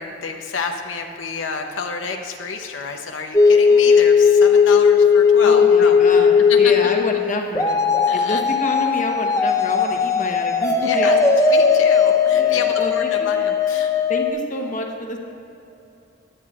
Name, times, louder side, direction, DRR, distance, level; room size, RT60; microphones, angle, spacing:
voice 1, 0.0-6.7 8.1-8.4 10.8-11.2 11.5-13.9, left 4 dB, 90° left, 3 dB, 0.8 m, -29 dB
sound 1, 3.3-14.3, left 6 dB, 15° left, 0.7 m, -16 dB
voice 2, 5.4-7.8 8.1-11.1 12.3-13.3 14.1-15.2, left 2 dB, 40° left, 2 dB, 1.0 m, -28 dB
17.0 x 10.5 x 2.4 m, 2.8 s
head